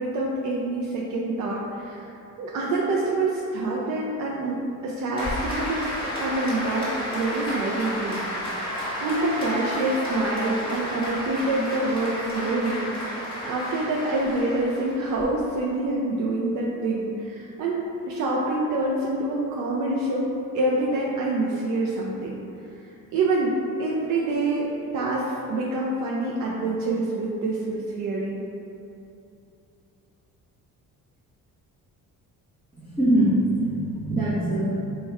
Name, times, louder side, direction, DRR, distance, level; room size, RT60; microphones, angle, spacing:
voice 1, 0.0-2.1 2.4-4.6 4.8-8.6 9.0-22.4 23.1-23.5 23.8-28.4, right 2 dB, 60° right, -4 dB, 0.4 m, -26 dB
Applause, 5.2-15.2, equal, 15° left, 1.0 m, -32 dB
voice 2, 32.8-34.7, right 1 dB, 15° right, -12 dB, 0.6 m, -23 dB
3.4 x 2.3 x 4.1 m, 2.7 s
cardioid pair, 165°, 33 cm